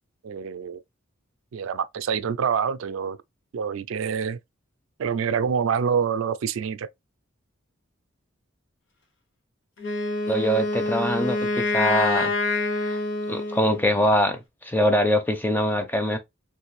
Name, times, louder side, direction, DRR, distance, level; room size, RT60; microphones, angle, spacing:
voice 1, 0.2-0.8 1.5-3.2 3.5-4.4 5.0-6.9, right 6 dB, 75° right, 0.3 m, -26 dB
Wind instrument woodwind instrument, 9.8-13.9, left 2 dB, 60° left, 0.8 m, -26 dB
voice 2, 10.3-12.3 12.8-13.0 13.3-16.2, equal, 10° left, 0.4 m, -23 dB
3.2 x 2.5 x 3.1 m
head